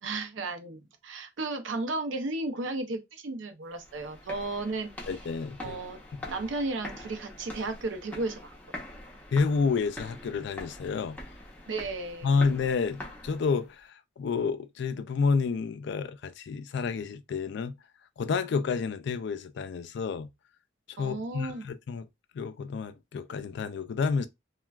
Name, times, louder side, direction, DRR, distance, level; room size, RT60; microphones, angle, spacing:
voice 1, 0.0-5.1 5.6-6.0 6.3-8.5 11.7-12.4 21.0-21.7, right 2 dB, 80° right, 0.6 m, -34 dB
sound 1, 3.7-13.7, left 1 dB, 10° left, 0.7 m, -44 dB
voice 2, 5.1-5.8 9.3-11.2 12.2-17.7 18.2-20.3 20.9-22.1 22.3-24.3, left 5 dB, 65° left, 0.3 m, -29 dB
3.3 x 2.2 x 2.3 m
head